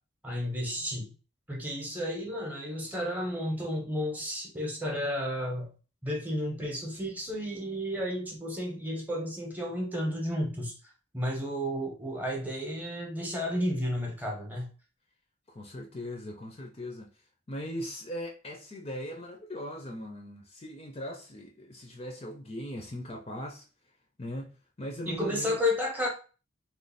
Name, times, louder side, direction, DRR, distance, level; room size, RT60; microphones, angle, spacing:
voice 1, 0.2-1.1 1.5-5.7 6.0-10.7 11.1-14.7 25.1-26.1, equal, 10° right, 0.8 m, -32 dB
voice 2, 15.5-17.1 17.5-23.7 24.2-25.6, equal, 30° left, 0.5 m, -39 dB
3.1 x 2.0 x 4.0 m
head